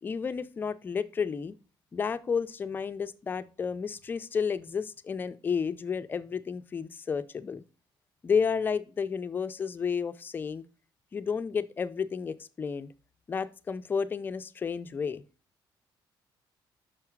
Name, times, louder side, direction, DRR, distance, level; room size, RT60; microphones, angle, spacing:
voice 1, 0.0-1.6 1.9-7.6 8.2-10.6 11.1-12.9 13.3-15.2, left 6 dB, 25° left, 0.4 m, -31 dB
6.2 x 4.8 x 4.5 m
cardioid pair, 175°, 9 cm